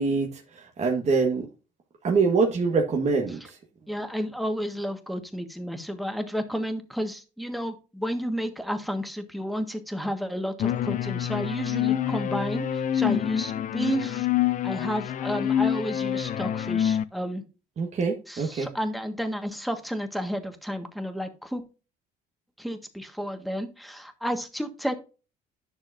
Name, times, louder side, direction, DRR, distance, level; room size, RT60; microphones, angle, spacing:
voice 1, 0.0-1.5 2.0-3.6 17.8-18.7, right 4 dB, 40° right, 1 dB, 1.4 m, -25 dB
voice 2, 3.9-14.3 14.6-17.4 18.3-21.6 22.6-24.9, equal, ahead, 7 dB, 1.5 m, -31 dB
sound 1, 10.6-17.0, left 10 dB, 50° left, 0.5 m, -26 dB
10.5 x 6.3 x 2.6 m, 0.32 s
cardioid pair, 110°, 17 cm